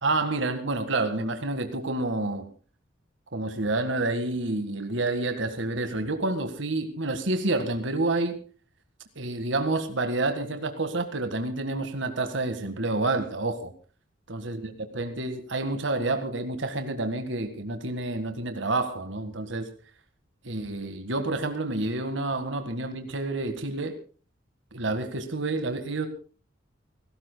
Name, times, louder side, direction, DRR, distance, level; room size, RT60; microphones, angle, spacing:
voice 1, 0.0-2.5 3.3-8.4 9.2-13.7 14.3-19.7 20.4-23.9 24.7-26.1, right 2 dB, 70° right, 8 dB, 1.8 m, -29 dB
29.5 x 13.5 x 2.2 m, 0.38 s
head